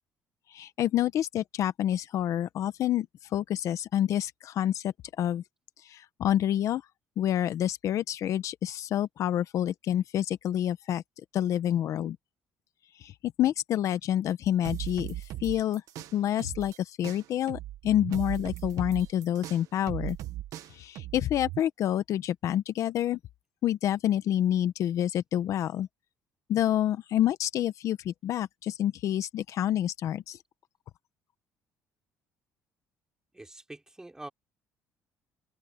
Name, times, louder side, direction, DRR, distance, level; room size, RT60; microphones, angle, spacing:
voice 1, 0.5-3.1 3.3-5.4 5.8-6.8 7.2-11.0 11.3-12.2 13.0-15.8 16.1-20.2 20.7-23.2 23.6-25.9 26.5-30.4, left 11 dB, 60° left, 0.9 m, -28 dB
sound 1, 14.6-16.8 17.0-21.6, right 14 dB, 70° right, 1.5 m, -38 dB
voice 2, 33.3-34.3, right 2 dB, 10° right, 4.3 m, -45 dB
cardioid pair, 110°, 6 cm